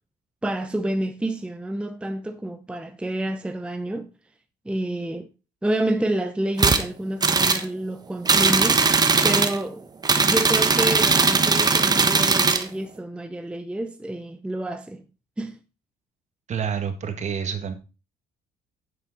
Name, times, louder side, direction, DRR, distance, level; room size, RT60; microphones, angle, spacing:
voice 1, 0.4-4.1 4.7-5.3 5.6-8.9 9.2-9.9 10.2-15.0 15.4-15.6, right 1 dB, 5° right, 0.7 m, -28 dB
sound 1, 6.6-6.8 7.2-7.6 8.3-9.6 10.0-12.7, right 4 dB, 25° right, 1.2 m, -19 dB
voice 2, 16.5-17.7, right 7 dB, 45° right, 1.8 m, -28 dB
9.4 x 7.8 x 3.9 m
cardioid pair, 110°, 17 cm